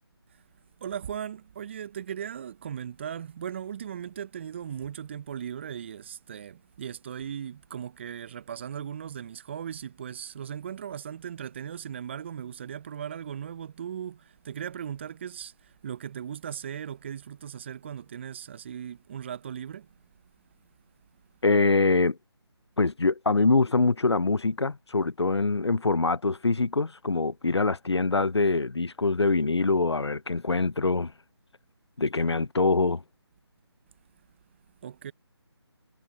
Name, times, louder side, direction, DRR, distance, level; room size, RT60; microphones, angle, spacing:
voice 1, 0.8-15.5 15.8-19.9 34.8-35.1, right 9 dB, 25° right, 1.0 m, -38 dB
voice 2, 21.4-22.2 22.8-31.1 32.0-33.0, left 3 dB, 80° left, 0.8 m, -24 dB
figure-of-eight pair, 155°, 14 cm